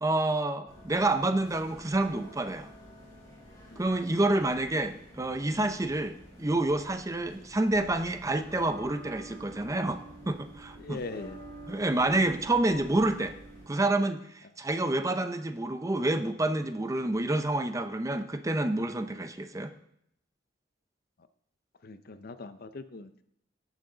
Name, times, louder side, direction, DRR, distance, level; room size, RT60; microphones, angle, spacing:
voice 1, 0.0-2.7 3.8-10.0 10.3-11.0 11.7-13.3 13.7-19.7, right 2 dB, 15° right, 8 dB, 0.5 m, -28 dB
sound 1, 0.7-13.7, right 1 dB, 20° left, 4.2 m, -49 dB
voice 2, 10.8-11.5 21.8-23.2, left 3 dB, 55° left, 11 dB, 0.6 m, -41 dB
15.5 x 6.2 x 3.9 m, 0.73 s
head